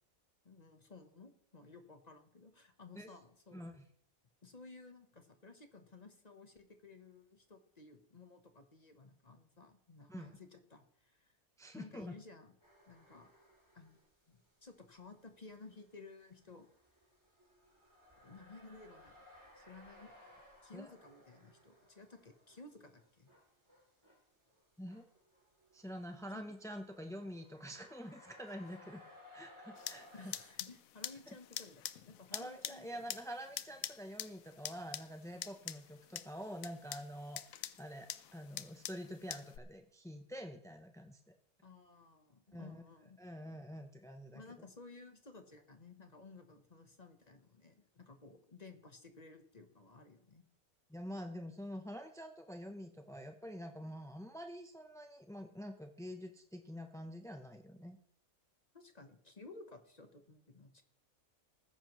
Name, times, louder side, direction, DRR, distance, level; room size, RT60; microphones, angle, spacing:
voice 1, 0.4-3.7 4.4-11.4 11.7-12.6 12.9-13.3 13.7-16.7 18.2-19.1 19.6-20.1 20.6-23.3 26.3-26.4 29.6-29.7 30.1-33.0 41.6-43.2 44.3-50.4 58.7-60.8, left 3 dB, 30° left, 7 dB, 1.0 m, -56 dB
voice 2, 3.5-3.8 10.1-10.3 11.6-12.2 20.7-20.9 24.8-25.0 25.7-29.0 29.3-30.3 31.3-31.4 32.3-41.3 42.5-42.8 43.2-44.4 50.9-58.0, equal, 5° left, 6 dB, 0.3 m, -47 dB
sound 1, 12.6-14.1 14.5-30.5, left 1 dB, 20° right, 3.6 m, -61 dB
sound 2, 29.8-39.6, left 11 dB, 75° left, 1.1 m, -46 dB
19.0 x 10.0 x 3.1 m, 0.70 s
omnidirectional pair, 1.5 m